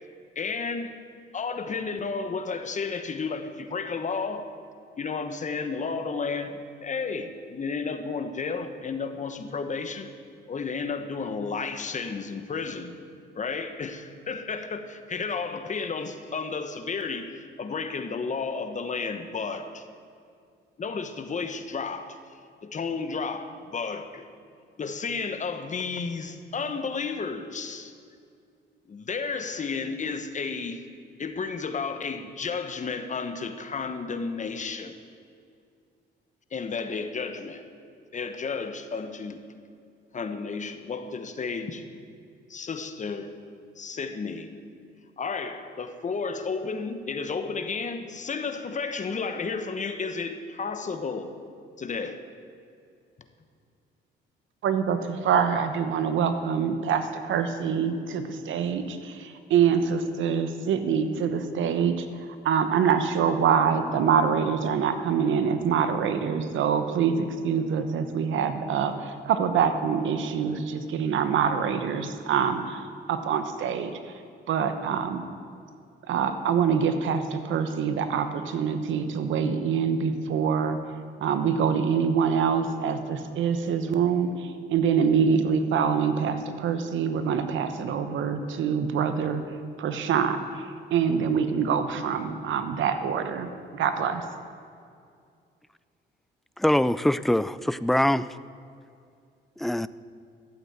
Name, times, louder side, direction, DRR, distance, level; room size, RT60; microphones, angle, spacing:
voice 1, 0.3-0.9 1.3-4.5 5.0-10.1 10.5-13.0 13.3-19.8 20.8-24.3 24.8-27.9 28.9-30.8 31.2-34.9 36.5-37.7 38.1-39.4 40.1-41.8 42.5-43.3 43.8-44.5 45.2-51.3 51.8-52.2, left 4 dB, 40° left, 8 dB, 1.1 m, -32 dB
voice 2, 54.6-62.1 62.4-74.1 74.5-75.2 76.1-80.8 81.2-89.4 89.8-90.6 90.9-94.2, right 7 dB, 75° right, 9 dB, 1.1 m, -25 dB
voice 3, 96.6-98.3 99.6-99.9, left 1 dB, ahead, 16 dB, 0.3 m, -23 dB
13.0 x 8.3 x 8.0 m, 2.4 s
cardioid pair, 90°, 20 cm